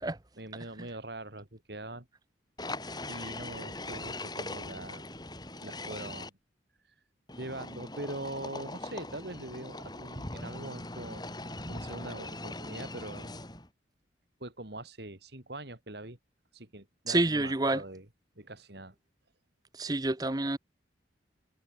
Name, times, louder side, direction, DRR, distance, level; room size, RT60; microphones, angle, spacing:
voice 1, 0.3-2.1 3.1-5.1 5.6-6.3 6.8-7.0 7.4-11.2 11.7-13.3 14.4-16.2 16.5-18.1 18.4-18.9, right 2 dB, 65° right, 3.4 m, -42 dB
sound 1, 2.6-6.3 7.3-13.7, left 2 dB, 20° left, 6.4 m, -41 dB
voice 2, 17.1-17.8 19.8-20.6, right 2 dB, 20° right, 0.8 m, -28 dB
head